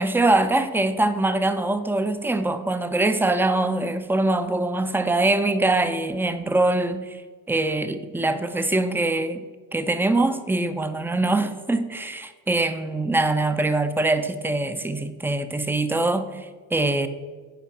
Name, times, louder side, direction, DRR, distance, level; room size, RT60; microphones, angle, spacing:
voice 1, 0.0-7.2 7.5-9.4 9.7-17.1, right 2 dB, 5° right, 10 dB, 0.6 m, -23 dB
11.0 x 5.0 x 4.3 m, 1.5 s
hypercardioid pair, 55°, 49 cm